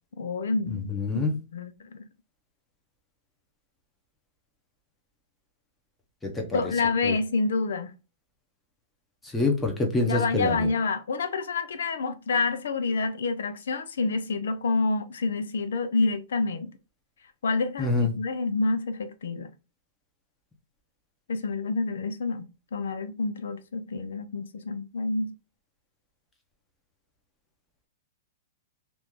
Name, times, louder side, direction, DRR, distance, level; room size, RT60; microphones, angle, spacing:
voice 1, 0.2-0.8 1.1-1.2 1.5-2.1 6.5-7.9 10.1-16.7 17.4-19.5 21.3-25.3, left 3 dB, 85° left, 0.6 m, -28 dB
voice 2, 0.7-1.3 6.2-6.7 7.0-7.2 9.3-10.7 17.8-18.1, left 3 dB, 10° left, 0.8 m, -26 dB
3.0 x 2.6 x 3.6 m
hypercardioid pair, 145°, 0 cm